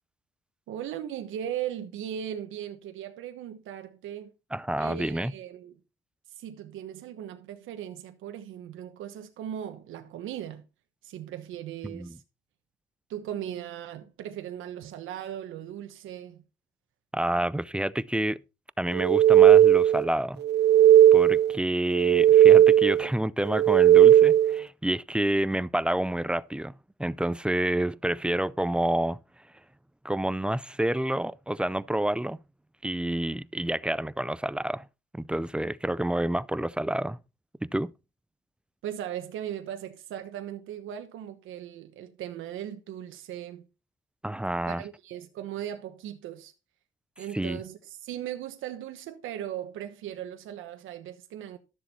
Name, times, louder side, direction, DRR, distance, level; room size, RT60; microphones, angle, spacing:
voice 1, 0.7-4.3 4.8-5.8 6.3-10.6 11.0-12.2 13.1-16.4 38.8-43.6 44.7-46.5 47.2-51.6, right 10 dB, 85° right, 1.1 m, -38 dB
voice 2, 4.5-5.3 11.8-12.2 17.1-18.4 18.8-20.4 21.1-26.7 27.0-29.2 30.0-32.4 32.8-34.9 35.1-37.2 37.6-37.9 44.2-44.8 47.3-47.6, right 1 dB, 5° right, 0.4 m, -28 dB
sound 1, 18.9-20.1 20.4-21.6 21.9-23.1 23.5-24.6, right 11 dB, 60° right, 0.5 m, -16 dB
13.0 x 7.1 x 4.2 m
cardioid pair, 90°, 20 cm